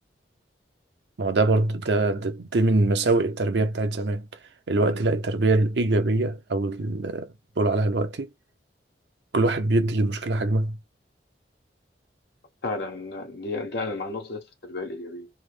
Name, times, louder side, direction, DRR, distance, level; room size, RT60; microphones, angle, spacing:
voice 1, 1.2-4.3 4.7-8.3 9.3-10.8, right 2 dB, 80° right, 0.7 m, -23 dB
voice 2, 12.6-15.3, left 3 dB, 65° left, 1.3 m, -33 dB
3.3 x 2.1 x 3.3 m
head